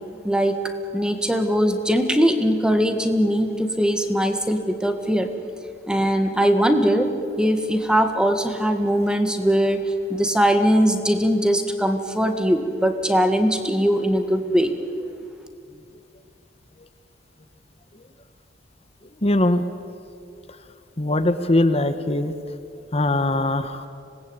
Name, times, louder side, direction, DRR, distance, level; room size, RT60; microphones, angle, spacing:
voice 1, 0.2-0.6 0.9-5.3 5.9-7.1 7.4-9.8 10.1-14.7, equal, 5° right, 7 dB, 1.8 m, -20 dB
voice 2, 19.2-19.6 21.0-22.4 22.9-23.9, left 1 dB, 35° left, 10 dB, 1.1 m, -21 dB
26.0 x 19.5 x 8.9 m, 2.4 s
head